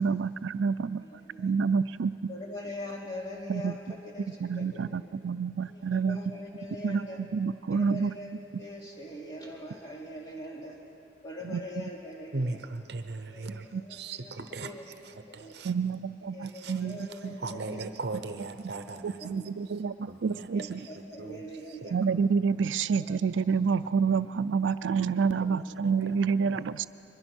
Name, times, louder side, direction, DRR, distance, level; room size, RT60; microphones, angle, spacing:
voice 1, 0.0-1.0 1.4-2.1 3.5-3.7 4.4-6.2 6.8-8.1 11.4-11.8 13.7-13.8 15.6-17.4 19.0-20.8 21.9-26.8, right 5 dB, 85° right, 15 dB, 0.4 m, -28 dB
voice 2, 0.8-1.8 2.3-4.3 4.5-5.1 5.7-7.2 7.7-10.8 11.2-12.6 13.1-14.9 15.3-15.6 16.3-17.8 18.9-19.5 20.5-22.0 23.1-23.2 25.4-25.6 26.7-26.9, left 1 dB, 20° left, -3 dB, 3.2 m, -43 dB
voice 3, 12.3-14.7 15.0-15.7 16.4-16.8 17.4-19.4 20.1-21.4 21.8-21.9 24.1-24.2 25.8-26.2, right 3 dB, 60° right, 9 dB, 0.8 m, -38 dB
23.0 x 21.5 x 6.2 m, 2.6 s
head